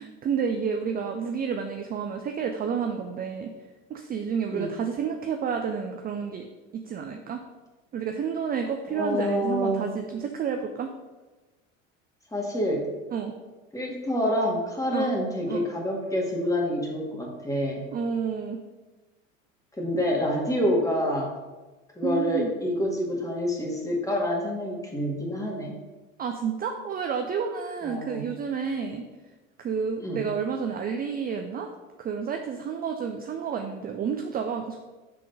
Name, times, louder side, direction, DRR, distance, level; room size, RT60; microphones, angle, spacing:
voice 1, 0.0-3.5 3.9-6.5 6.7-7.4 7.9-10.9 13.1-13.3 14.9-15.1 15.5-15.6 17.9-18.6 22.0-22.5 26.2-29.0 29.6-31.7 32.0-34.8, right 6 dB, 25° right, 5 dB, 0.5 m, -30 dB
voice 2, 8.9-9.9 12.3-12.9 13.7-17.8 19.8-21.3 22.0-25.7 27.9-28.3 30.0-30.2, equal, 10° left, -1 dB, 1.8 m, -27 dB
5.8 x 3.7 x 5.3 m, 1.2 s
hypercardioid pair, 85°, 37 cm